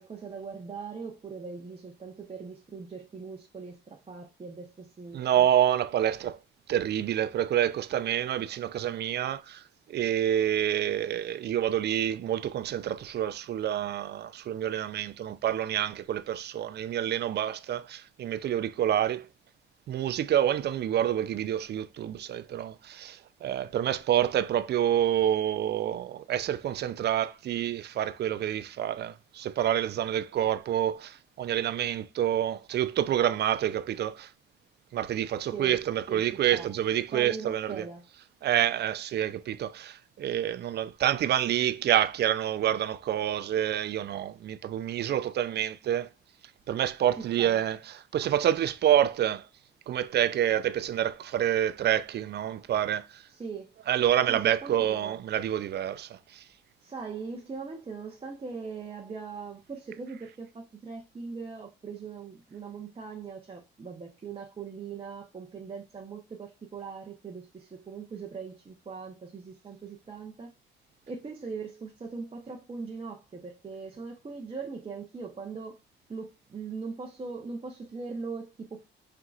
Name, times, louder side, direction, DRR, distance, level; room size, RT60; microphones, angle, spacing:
voice 1, 0.0-5.4 35.5-35.8 36.1-36.2 36.5-36.7 37.1-38.0 47.4-47.6 53.4-53.8 54.3-55.2 56.8-70.5 71.1-75.8 76.1-78.9, right 5 dB, 30° right, 0.8 m, -40 dB
voice 2, 5.1-6.4 6.7-19.3 19.9-34.3 34.9-37.9 38.4-46.1 46.7-49.5 49.9-53.3 53.9-56.5, right 11 dB, 55° right, 0.5 m, -28 dB
4.6 x 3.7 x 2.4 m
cardioid pair, 90°, 20 cm